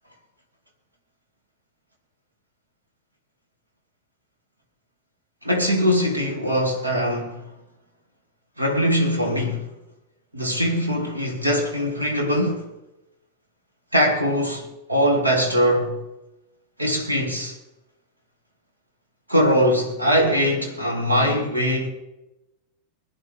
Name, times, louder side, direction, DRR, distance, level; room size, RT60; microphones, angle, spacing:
voice 1, 5.4-7.4 8.6-9.7 10.3-12.7 13.9-16.0 16.8-17.5 19.3-21.9, equal, 85° right, 2.6 m, -21 dB
21.0 x 10.5 x 3.5 m
figure-of-eight pair, 90°, 0 cm